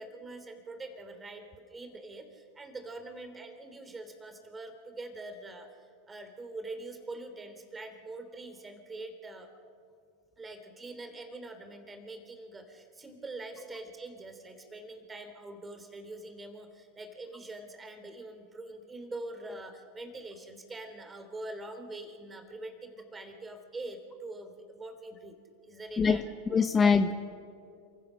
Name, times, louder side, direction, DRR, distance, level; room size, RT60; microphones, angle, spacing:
voice 1, 0.0-5.7 6.1-9.5 10.4-26.2 26.5-26.6, right 2 dB, 20° right, 7 dB, 3.1 m, -44 dB
voice 2, 26.0-27.1, left 5 dB, 25° left, 9 dB, 1.0 m, -24 dB
27.5 x 15.5 x 6.4 m, 2.3 s
hypercardioid pair, 90°, 0 cm